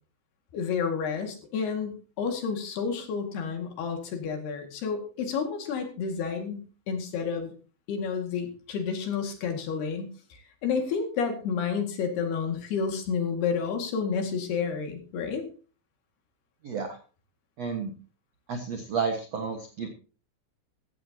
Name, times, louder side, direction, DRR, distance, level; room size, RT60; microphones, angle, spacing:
voice 1, 0.5-7.5 7.9-15.4, left 6 dB, 60° left, 4 dB, 3.9 m, -30 dB
voice 2, 16.6-17.0 17.6-17.9 18.5-19.9, right 5 dB, 80° right, 4 dB, 1.5 m, -31 dB
16.0 x 14.5 x 2.9 m, 0.37 s
omnidirectional pair, 5.6 m